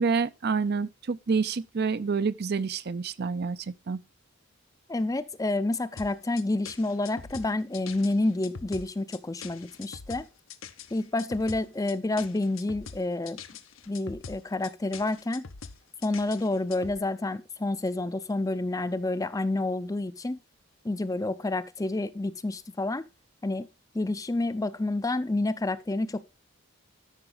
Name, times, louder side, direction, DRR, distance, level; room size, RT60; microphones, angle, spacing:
voice 1, 0.0-4.0, right 5 dB, 50° right, 0.5 m, -28 dB
voice 2, 4.9-10.3 10.9-13.4 13.9-15.5 16.0-20.4 20.8-23.0 23.4-23.7 23.9-26.2, left 2 dB, 15° left, 0.5 m, -29 dB
sound 1, 6.0-17.0, left 5 dB, 75° left, 0.9 m, -43 dB
12.5 x 6.0 x 3.8 m
head